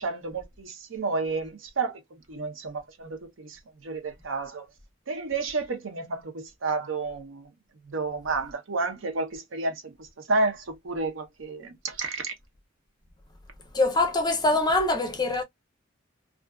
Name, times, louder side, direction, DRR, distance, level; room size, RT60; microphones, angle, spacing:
voice 1, 0.0-4.7 5.1-7.5 7.9-12.3, right 3 dB, 80° right, 0.7 m, -31 dB
voice 2, 13.7-15.4, left 2 dB, 20° left, 0.5 m, -23 dB
2.5 x 2.3 x 2.2 m
head